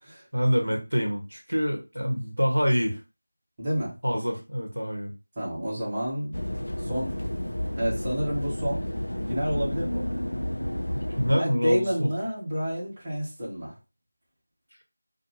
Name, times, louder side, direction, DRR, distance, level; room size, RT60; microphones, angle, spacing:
voice 1, 0.3-3.0 4.0-5.1 11.2-12.1, equal, 90° right, 2 dB, 1.0 m, -26 dB
voice 2, 3.6-3.9 5.4-6.3 6.8-7.1 7.8-8.9 9.3-10.0 11.3-13.8, equal, 20° right, -8 dB, 1.1 m, -29 dB
sound 1, 6.3-11.4, left 1 dB, 70° left, 0.3 m, -31 dB
2.5 x 2.2 x 3.0 m, 0.27 s
figure-of-eight pair, 170°, 0 cm